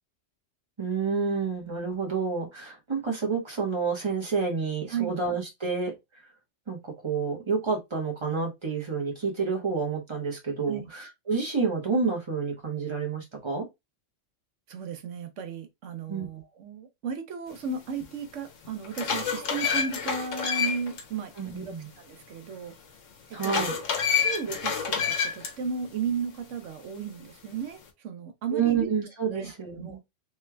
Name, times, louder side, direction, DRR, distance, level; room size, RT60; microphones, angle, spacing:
voice 1, 0.8-5.9 6.7-13.6 16.1-16.3 21.4-21.9 23.3-23.7 28.5-30.0, right 5 dB, 25° right, 1.1 m, -29 dB
voice 2, 14.7-22.7 23.3-23.7 24.2-28.9 29.3-30.0, right 6 dB, 80° right, 1.0 m, -35 dB
sound 1, 18.0-18.1 18.6-21.0 21.4-21.5 23.4-25.5, left 7 dB, 85° left, 1.2 m, -28 dB
3.4 x 3.1 x 2.2 m
omnidirectional pair, 1.3 m